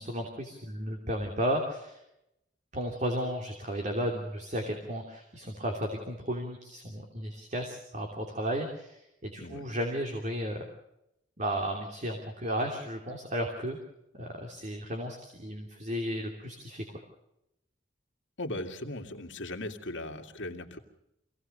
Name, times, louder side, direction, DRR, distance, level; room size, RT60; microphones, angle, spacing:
voice 1, 0.0-2.0 2.7-10.6 11.4-13.8 14.1-16.8, equal, 40° right, 2 dB, 3.0 m, -34 dB
voice 2, 18.4-20.8, left 1 dB, 70° left, 3 dB, 2.4 m, -38 dB
26.0 x 17.5 x 6.6 m, 0.84 s
head